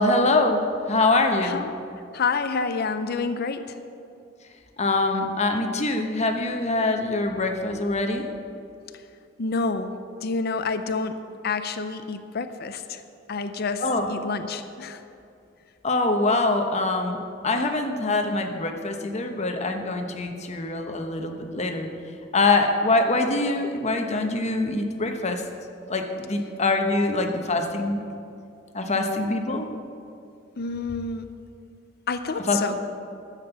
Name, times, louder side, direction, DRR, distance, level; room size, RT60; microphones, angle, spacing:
voice 1, 0.0-1.6 4.8-8.3 13.8-14.1 15.8-17.2 17.4-21.9 22.3-25.4 25.9-28.0 28.7-29.7 32.5-32.7, left 2 dB, 35° left, 5 dB, 1.0 m, -24 dB
voice 2, 1.4-1.7 2.1-3.7 9.4-9.9 10.2-11.2 11.4-13.0 13.3-13.8 14.1-15.0 30.6-31.3 32.1-32.7, left 4 dB, 55° left, 10 dB, 0.6 m, -28 dB
11.0 x 7.5 x 8.0 m, 2.5 s
head